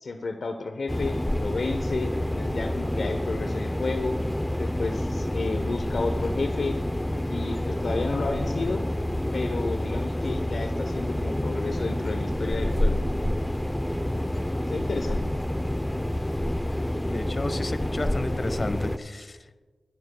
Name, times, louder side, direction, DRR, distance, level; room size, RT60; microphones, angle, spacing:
voice 1, 0.0-4.2 4.6-6.8 7.3-8.8 9.3-13.0 14.6-15.3, left 3 dB, 75° left, 6 dB, 0.8 m, -31 dB
sound 1, 0.9-19.0, left 1 dB, 10° left, 0.6 m, -28 dB
voice 2, 17.1-19.6, left 2 dB, 45° left, 10 dB, 1.1 m, -32 dB
21.5 x 13.0 x 2.3 m, 1.3 s
cardioid pair, 55°, 0 cm